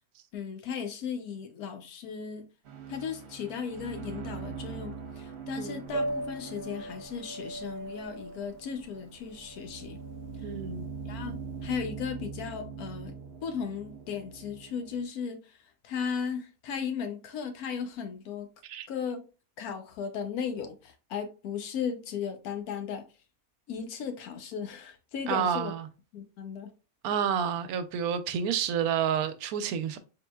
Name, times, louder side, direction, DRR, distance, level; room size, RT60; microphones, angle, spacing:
voice 1, 0.3-2.5 2.9-10.0 10.4-10.5 11.0-11.4 11.6-13.1 13.4-15.6 15.8-18.5 18.9-19.2 19.6-23.0 23.7-25.7 26.1-26.7, left 6 dB, 90° left, 1.2 m, -36 dB
sound 1, 2.7-15.0, right 5 dB, 55° right, 0.9 m, -43 dB
Piano, 5.9-11.8, right 1 dB, 30° left, 1.9 m, -39 dB
voice 2, 10.4-10.9 18.6-18.9 25.3-25.9 27.0-30.0, right 8 dB, 90° right, 1.1 m, -29 dB
4.1 x 3.8 x 2.2 m
omnidirectional pair, 1.5 m